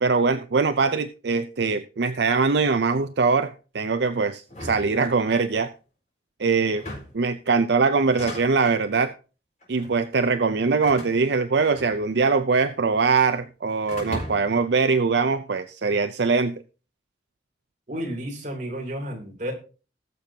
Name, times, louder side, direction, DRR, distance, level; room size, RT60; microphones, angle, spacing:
voice 1, 0.0-5.7 6.4-6.8 7.1-9.1 9.7-16.5, right 4 dB, 75° right, 10 dB, 0.6 m, -22 dB
sound 1, 4.5-5.6 6.6-7.3 8.0-8.8 9.6-10.0 10.8-12.3 12.6-13.4 13.9-14.6, left 1 dB, 45° left, 4.5 m, -38 dB
voice 2, 17.9-19.5, equal, 45° right, 0 dB, 3.2 m, -32 dB
20.0 x 6.8 x 2.8 m, 0.34 s
head